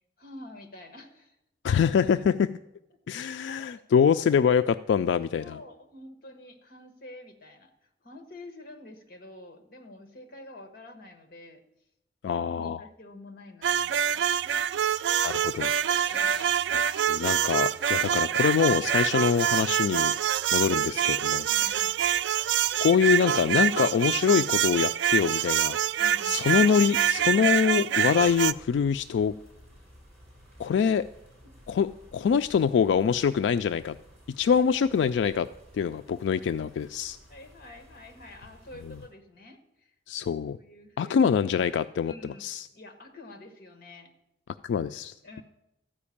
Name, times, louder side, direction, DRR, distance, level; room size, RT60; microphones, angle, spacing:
voice 1, 0.2-1.4 3.6-3.8 5.4-11.6 12.3-14.3 16.1-16.5 21.5-22.0 26.0-26.5 30.7-30.8 31.4-31.5 37.3-39.9 40.6-41.2 42.1-44.1 45.2-45.4, left 2 dB, 55° left, 7 dB, 1.4 m, -48 dB
voice 2, 1.6-2.5 3.1-5.6 12.2-12.8 15.2-20.1 20.5-21.8 22.8-25.8 26.2-29.3 30.6-31.0 31.7-34.0 34.4-35.5 35.7-37.2 40.1-40.6 41.0-42.7 44.6-45.4, left 7 dB, 85° left, 12 dB, 0.3 m, -25 dB
sound 1, 13.6-28.5, right 9 dB, 85° right, 0.3 m, -26 dB
sound 2, 28.1-39.1, equal, 5° left, 5.2 m, -54 dB
13.5 x 5.1 x 8.5 m, 0.86 s
head